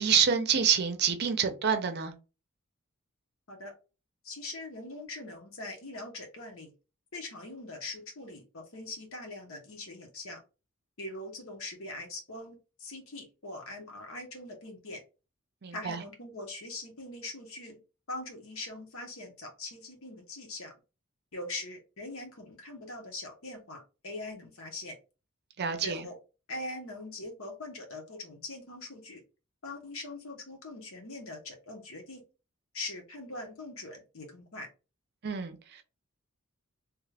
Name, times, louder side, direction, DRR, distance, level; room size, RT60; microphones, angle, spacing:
voice 1, 0.0-2.1 15.6-16.0 25.6-26.1 35.2-35.8, right 7 dB, 50° right, 0.6 m, -27 dB
voice 2, 4.2-6.7 7.1-10.4 11.0-15.0 15.7-17.8 18.1-20.7 21.3-25.0 25.8-26.2 26.5-29.2 29.6-32.2 32.7-34.7, left 2 dB, 70° left, 1.2 m, -42 dB
3.1 x 2.5 x 3.3 m
head